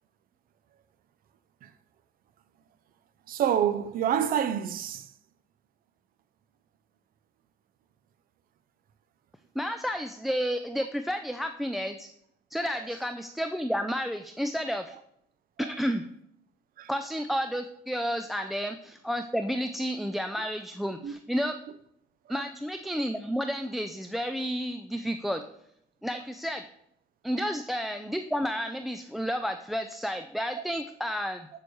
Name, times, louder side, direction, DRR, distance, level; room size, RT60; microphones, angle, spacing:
voice 1, 3.3-5.1 15.6-15.7 16.8-16.9 18.4-18.5 21.0-21.1 22.3-22.4, right 9 dB, 60° right, 0.6 m, -28 dB
voice 2, 9.6-12.1 12.5-15.0 15.6-16.0 16.9-21.6 22.3-25.4 26.0-26.6 27.2-31.5, equal, ahead, 0.3 m, -31 dB
7.8 x 6.9 x 3.1 m
cardioid pair, 110°, 17 cm